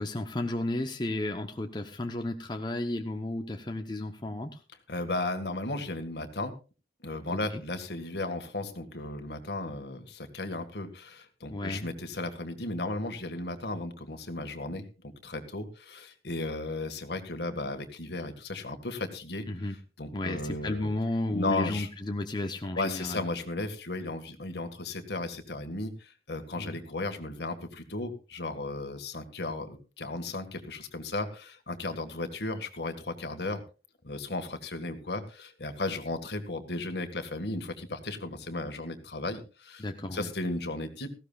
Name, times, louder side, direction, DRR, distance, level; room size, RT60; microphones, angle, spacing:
voice 1, 0.0-4.6 7.3-7.6 11.5-12.0 19.5-19.7 20.1-23.2 26.6-26.8 39.8-40.3, left 1 dB, 25° left, 5 dB, 0.9 m, -33 dB
voice 2, 4.9-6.5 7.0-19.4 20.0-20.9 21.3-21.9 22.8-33.6 34.0-39.9 40.1-41.1, left 2 dB, 70° left, 6 dB, 1.8 m, -35 dB
18.0 x 15.5 x 2.4 m, 0.32 s
head